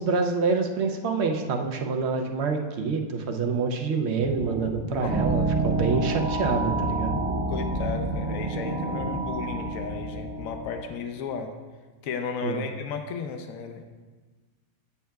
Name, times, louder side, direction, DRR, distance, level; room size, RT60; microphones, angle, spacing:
voice 1, 0.0-7.1 12.4-12.6, right 4 dB, 60° right, 4 dB, 0.8 m, -26 dB
sound 1, 4.2-9.2, equal, 25° right, 1.8 m, -34 dB
sound 2, 5.1-10.9, right 2 dB, 5° right, 1.4 m, -29 dB
voice 2, 7.5-11.5 12.0-13.9, left 5 dB, 70° left, 5 dB, 1.0 m, -34 dB
8.4 x 7.3 x 2.3 m, 1.3 s
omnidirectional pair, 1.5 m